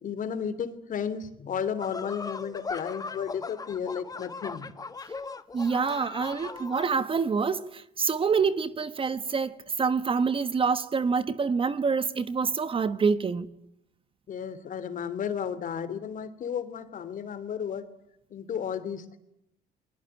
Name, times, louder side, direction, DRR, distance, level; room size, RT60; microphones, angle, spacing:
voice 1, 0.0-4.7 14.3-17.9 18.3-19.2, left 7 dB, 50° left, 3.1 m, -33 dB
sound 1, 1.8-6.9, left 4 dB, 20° left, 1.4 m, -38 dB
voice 2, 5.5-13.5, right 5 dB, 30° right, 1.3 m, -26 dB
29.0 x 21.5 x 9.1 m
cardioid pair, 110°, 17 cm